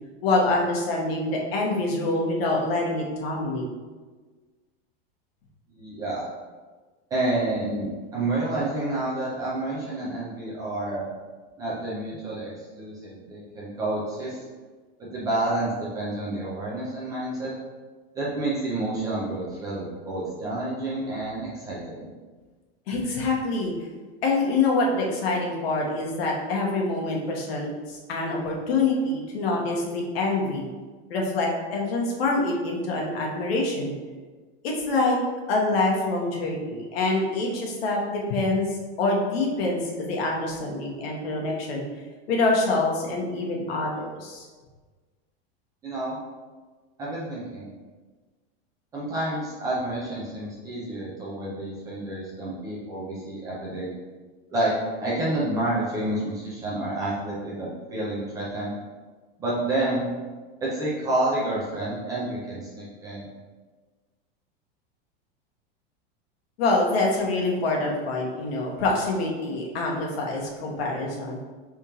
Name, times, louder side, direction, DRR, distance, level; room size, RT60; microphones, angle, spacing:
voice 1, 0.2-3.7 22.9-23.7 24.2-30.7 31.1-33.9 34.6-35.2 35.5-38.7 39.0-41.8 42.3-44.5 66.6-71.4, left 2 dB, 75° left, -1 dB, 1.2 m, -25 dB
voice 2, 5.7-6.3 7.1-11.1 11.6-14.4 15.0-17.5 18.1-22.0 45.8-46.2 47.0-47.7 48.9-53.9 54.5-54.8 55.0-58.7 59.4-60.1 60.6-63.2, right 2 dB, 10° right, -6 dB, 0.4 m, -29 dB
4.9 x 3.5 x 2.9 m, 1.3 s
supercardioid pair, 175°, 31 cm